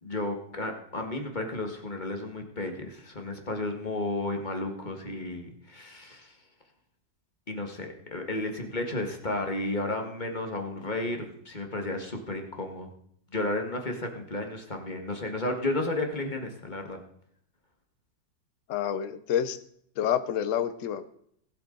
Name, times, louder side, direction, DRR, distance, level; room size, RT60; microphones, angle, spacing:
voice 1, 0.0-6.3 7.5-12.9 13.3-17.0, left 2 dB, 25° left, 3 dB, 1.8 m, -33 dB
voice 2, 18.7-19.6 20.0-21.1, left 9 dB, 55° left, 11 dB, 1.0 m, -28 dB
19.5 x 8.2 x 3.9 m, 0.67 s
omnidirectional pair, 2.0 m